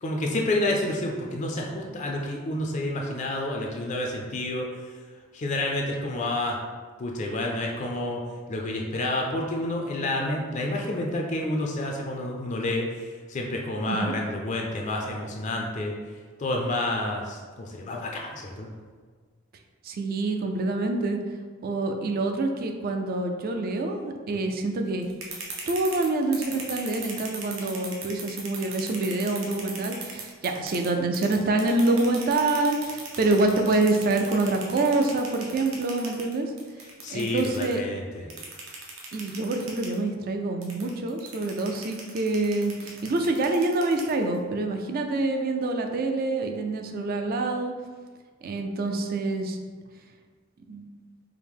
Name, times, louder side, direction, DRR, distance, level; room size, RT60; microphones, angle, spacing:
voice 1, 0.0-5.0 5.3-6.6 7.0-8.2 8.5-18.7 36.8-38.3, left 1 dB, 35° left, 0 dB, 0.4 m, -29 dB
voice 2, 19.8-21.2 21.6-25.1 25.7-36.5 37.1-37.8 39.1-47.7 48.4-49.6 50.7-50.8, right 2 dB, 45° right, 4 dB, 0.4 m, -26 dB
sound 1, 25.0-30.9 31.1-37.7 38.3-40.0 40.6-44.4, right 4 dB, 65° right, 0.7 m, -38 dB
4.6 x 2.0 x 3.5 m, 1.5 s
head